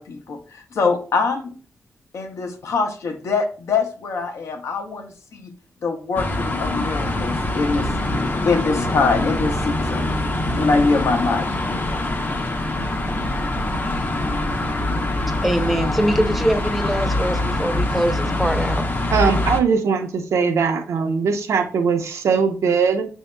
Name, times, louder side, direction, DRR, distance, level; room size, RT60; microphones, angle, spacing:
voice 1, 0.0-1.5 2.1-5.5 5.8-7.9 8.4-10.0 10.6-11.5, left 4 dB, 80° left, 0.8 m, -23 dB
sound 1, 6.2-19.6, left 1 dB, 40° left, 0.6 m, -24 dB
voice 2, 15.4-18.9, right 1 dB, ahead, 0.6 m, -22 dB
voice 3, 19.1-23.1, right 5 dB, 85° right, 0.6 m, -20 dB
6.2 x 2.7 x 2.2 m
cardioid pair, 80°, 5 cm